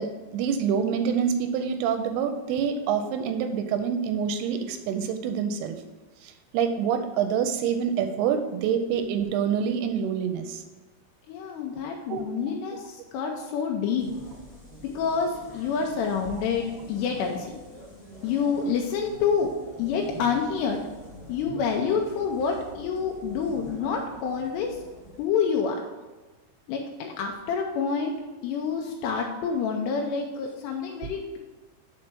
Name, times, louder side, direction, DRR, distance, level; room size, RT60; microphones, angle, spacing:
voice 1, 0.0-5.8 6.2-10.6 12.1-12.2 16.4-16.5, right 7 dB, 85° right, 7 dB, 2.5 m, -26 dB
voice 2, 11.3-14.1 14.9-17.6 18.2-20.8 21.3-24.8 25.2-25.8 26.7-28.2 28.4-31.4, left 6 dB, 90° left, 1 dB, 2.8 m, -28 dB
sound 1, 14.0-25.2, equal, 35° left, 0.9 m, -45 dB
6.2 x 4.5 x 5.9 m, 1.2 s
omnidirectional pair, 4.7 m